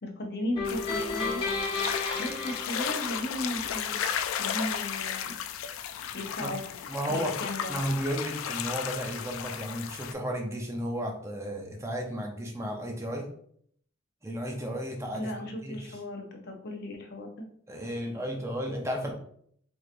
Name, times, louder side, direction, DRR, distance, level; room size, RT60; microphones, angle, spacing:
voice 1, 0.0-1.4 2.2-4.0 4.4-5.4 6.1-6.6 7.1-7.7 15.1-17.3, left 1 dB, 50° left, 2 dB, 0.8 m, -35 dB
sound 1, 0.6-10.1, left 8 dB, 80° left, 0.3 m, -34 dB
sound 2, 0.6-3.8, left 3 dB, 25° left, 1.1 m, -33 dB
voice 2, 6.9-7.4 7.7-13.3 14.2-16.0 17.7-19.1, equal, 15° right, 1 dB, 0.6 m, -33 dB
4.5 x 2.8 x 2.5 m, 0.64 s
head